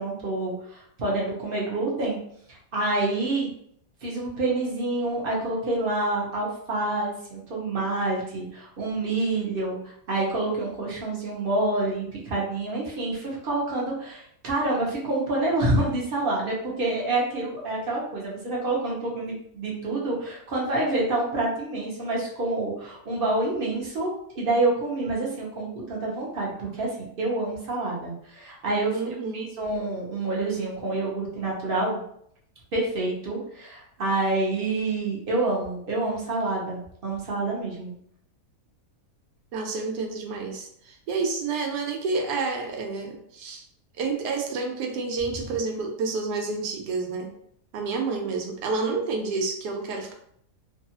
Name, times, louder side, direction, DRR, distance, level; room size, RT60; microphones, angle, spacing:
voice 1, 0.0-2.2 2.5-3.5 4.0-26.9 27.2-29.0 29.3-32.0 32.7-37.9, right 2 dB, 50° right, -3 dB, 0.7 m, -27 dB
voice 2, 28.9-29.5 39.5-43.6 44.0-47.3 47.7-50.1, right 4 dB, 85° right, 3 dB, 1.2 m, -29 dB
2.7 x 2.3 x 2.7 m, 0.68 s
omnidirectional pair, 1.7 m